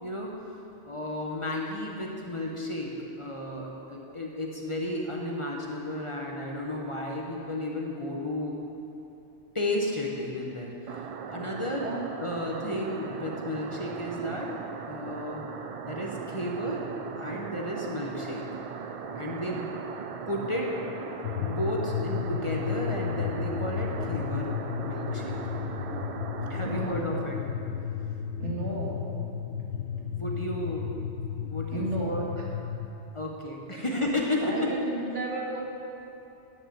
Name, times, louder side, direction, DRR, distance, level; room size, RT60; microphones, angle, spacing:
voice 1, 0.0-0.4 0.8-8.5 9.5-11.9 12.2-14.5 14.9-15.4 15.9-16.9 17.1-18.5 19.1-19.8 20.3-20.7 21.4-25.4 26.5-27.4 30.1-30.9 31.4-32.2 33.1-34.9, left 1 dB, 30° left, -1 dB, 1.0 m, -33 dB
sound 1, 10.9-27.0, right 6 dB, 60° right, 0.3 m, -39 dB
sound 2, 21.2-32.9, left 8 dB, 80° left, 0.9 m, -33 dB
voice 2, 26.6-27.2 28.4-29.3 31.7-32.5 34.4-35.6, right 2 dB, 80° right, -3 dB, 2.1 m, -33 dB
9.8 x 7.2 x 7.5 m, 2.9 s
omnidirectional pair, 1.2 m